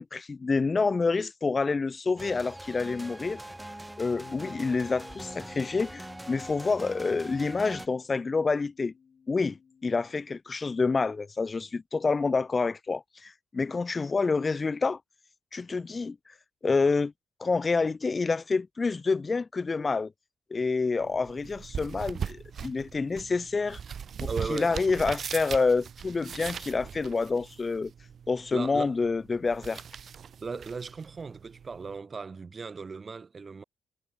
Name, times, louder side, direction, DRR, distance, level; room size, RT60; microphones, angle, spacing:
voice 1, 0.0-3.4 4.0-8.9 9.3-9.6 9.8-15.0 15.5-16.3 16.6-17.1 17.4-20.1 20.5-23.8 24.2-27.9 28.3-29.8, left 4 dB, 30° left, 0.5 m, -28 dB
sound 1, 2.2-7.9, right 1 dB, 10° right, 3.4 m, -43 dB
Bass guitar, 4.1-10.4, left 6 dB, 45° left, 6.8 m, -54 dB
sound 2, 21.0-32.0, right 7 dB, 50° right, 0.4 m, -40 dB
voice 2, 24.3-24.8 28.5-28.9 30.4-33.6, right 4 dB, 35° right, 1.4 m, -37 dB
cardioid pair, 90°, 0 cm